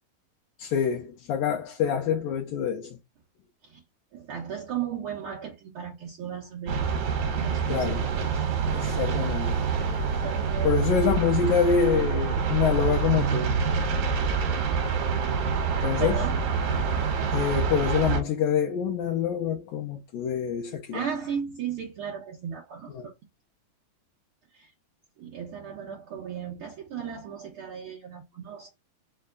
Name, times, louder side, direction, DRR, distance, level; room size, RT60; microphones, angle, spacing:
voice 1, 0.6-3.0 7.7-8.1 8.7-9.6 10.6-13.5 15.8-16.3 17.3-21.0 22.9-23.1, left 7 dB, 75° left, 2.0 m, -26 dB
voice 2, 4.1-8.4 10.2-11.1 16.0-16.4 20.9-23.1 24.5-24.7 25.2-28.7, right 8 dB, 90° right, 1.1 m, -36 dB
sound 1, 6.7-18.2, right 6 dB, 65° right, 2.3 m, -26 dB
5.5 x 2.2 x 3.6 m
omnidirectional pair, 4.0 m